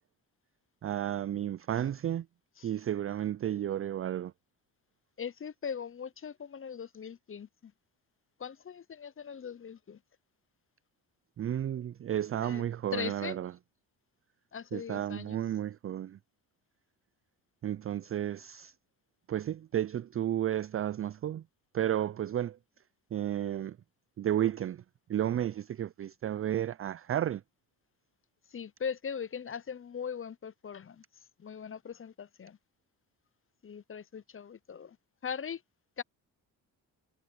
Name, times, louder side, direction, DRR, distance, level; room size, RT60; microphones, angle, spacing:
voice 1, 0.8-2.3 2.6-4.3 11.4-13.5 14.7-16.2 17.6-18.7 19.3-21.4 21.7-22.6 23.1-23.8 24.2-24.8 25.1-27.4, right 11 dB, 35° right, 0.4 m, -32 dB
voice 2, 5.2-7.7 8.4-10.0 12.4-12.6 12.9-13.4 14.5-15.4 28.5-31.0 31.4-32.6 33.6-35.0 35.2-35.6 36.0-36.1, left 7 dB, 30° left, 0.7 m, -40 dB
supercardioid pair, 60°, 44 cm